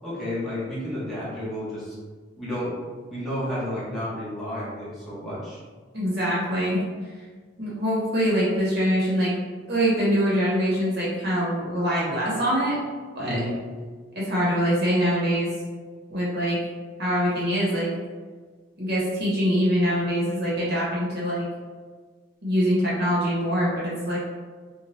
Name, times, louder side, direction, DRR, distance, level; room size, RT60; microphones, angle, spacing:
voice 1, 0.0-1.9 2.4-2.7 3.1-5.6 13.2-13.6, left 1 dB, ahead, -11 dB, 0.9 m, -31 dB
voice 2, 5.9-6.8 7.6-9.4 9.7-12.8 13.1-13.4 14.1-15.5 16.1-16.6 17.0-17.9 18.8-21.4 22.4-24.2, equal, 60° right, -7 dB, 1.1 m, -24 dB
2.8 x 2.3 x 3.2 m, 1.5 s
head